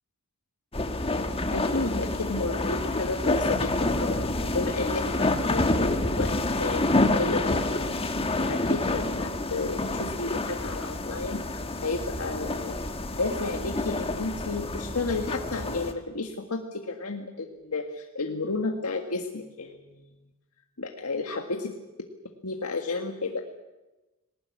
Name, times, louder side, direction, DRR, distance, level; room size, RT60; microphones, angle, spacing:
sound 1, 0.7-15.9, left 2 dB, 25° left, 1.6 m, -28 dB
voice 1, 1.5-6.3 6.6-6.9 7.1-7.9 8.5-12.8 13.1-20.1 20.8-21.7 22.4-23.4, left 3 dB, 85° left, 3 dB, 1.8 m, -32 dB
20.5 x 18.5 x 9.6 m, 1.1 s
head